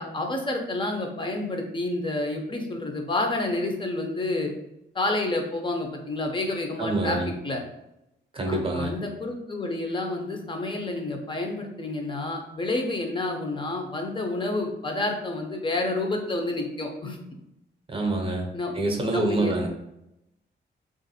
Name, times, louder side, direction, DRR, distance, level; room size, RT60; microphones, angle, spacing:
voice 1, 0.0-4.5 4.9-7.2 7.4-7.6 8.5-17.2 18.5-18.7 19.1-19.5, left 2 dB, 25° left, 3 dB, 0.6 m, -29 dB
voice 2, 6.8-7.3 8.3-8.9 17.9-18.5 18.7-19.7, right 2 dB, 30° right, 2 dB, 0.7 m, -26 dB
3.5 x 2.5 x 4.1 m, 0.85 s
wide cardioid pair, 140°, 19 cm